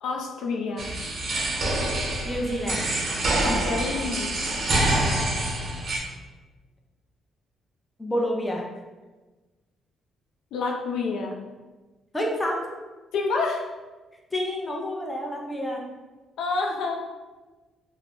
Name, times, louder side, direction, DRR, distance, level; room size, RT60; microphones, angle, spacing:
voice 1, 0.0-0.9 3.4-4.3 10.5-11.4 13.1-13.6 16.4-16.9, left 4 dB, 85° left, 0 dB, 0.3 m, -28 dB
sound 1, 0.8-6.0, right 1 dB, 50° right, 0.5 m, -26 dB
voice 2, 2.2-2.9 8.0-8.6 12.1-12.6 14.3-15.8, equal, 15° left, 0 dB, 0.5 m, -28 dB
2.3 x 2.0 x 3.5 m, 1.2 s
cardioid pair, 90°, 0 cm